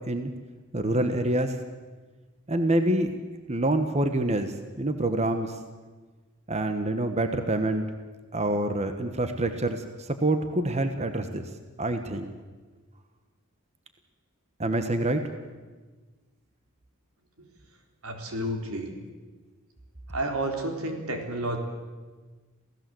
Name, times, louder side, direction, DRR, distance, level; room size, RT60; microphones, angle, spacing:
voice 1, 0.7-1.6 2.5-3.1 3.5-5.5 6.5-7.9 8.3-11.4 11.8-12.3 14.6-15.2, right 1 dB, 30° right, 8 dB, 1.3 m, -26 dB
voice 2, 18.0-18.9 20.1-21.6, right 1 dB, 90° right, 4 dB, 3.9 m, -31 dB
28.0 x 16.5 x 7.8 m, 1.3 s
head